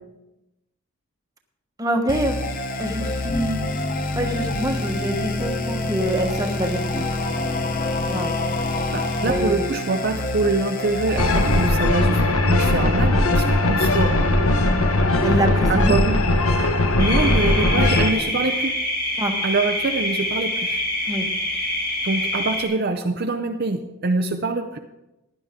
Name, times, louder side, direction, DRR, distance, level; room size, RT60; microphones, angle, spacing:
voice 1, 1.8-2.4 2.8-3.7 4.1-7.0 8.1-8.3 9.2-9.7 15.2-16.0 19.2-19.3 21.1-21.3, right 1 dB, 15° right, 3 dB, 1.2 m, -25 dB
sound 1, 2.1-11.7, left 2 dB, 40° left, 0.8 m, -26 dB
voice 2, 8.9-12.2 12.5-14.2 15.7-16.2 17.0-18.8 19.4-20.8 22.0-24.8, right 3 dB, 45° right, 5 dB, 0.6 m, -24 dB
sound 2, 11.2-18.1, left 2 dB, 80° left, 1.1 m, -19 dB
sound 3, 17.0-22.6, left 1 dB, 20° left, 2.6 m, -26 dB
16.0 x 11.0 x 3.7 m, 0.97 s
head